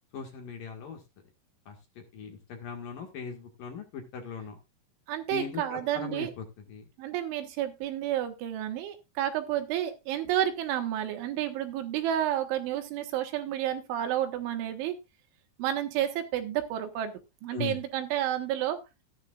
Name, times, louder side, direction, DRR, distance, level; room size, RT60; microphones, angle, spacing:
voice 1, 0.1-1.0 1.7-4.6 5.3-6.8 17.5-17.8, left 6 dB, 55° left, 3 dB, 3.0 m, -39 dB
voice 2, 5.1-6.3 7.0-15.0 15.6-17.1 17.4-18.8, right 11 dB, 80° right, 7 dB, 3.9 m, -30 dB
15.0 x 10.5 x 2.5 m, 0.25 s
omnidirectional pair, 5.5 m